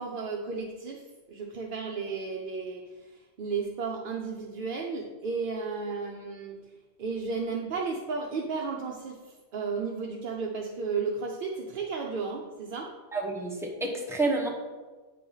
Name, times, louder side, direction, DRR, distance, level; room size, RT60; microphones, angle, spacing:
voice 1, 0.0-6.5 7.0-13.0, right 4 dB, 60° right, 0 dB, 0.7 m, -34 dB
voice 2, 13.1-14.5, right 2 dB, 5° right, 0 dB, 0.8 m, -29 dB
8.3 x 2.9 x 5.3 m, 1.3 s
omnidirectional pair, 1.1 m